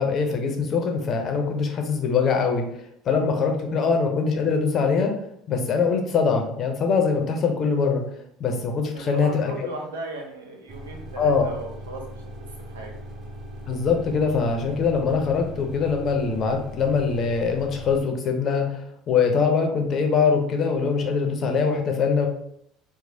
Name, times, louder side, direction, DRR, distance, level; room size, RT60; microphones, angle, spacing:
voice 1, 0.0-2.6 3.1-5.1 5.5-8.0 8.4-9.5 11.2-11.5 13.7-22.3, left 5 dB, 45° left, 3 dB, 0.6 m, -23 dB
voice 2, 3.1-3.7 8.9-12.0 12.7-13.0, right 2 dB, 90° right, 1 dB, 0.5 m, -37 dB
sound 1, 10.7-18.0, equal, 50° right, 0.8 m, -39 dB
3.0 x 2.0 x 2.7 m, 0.70 s
hypercardioid pair, 75°, 0 cm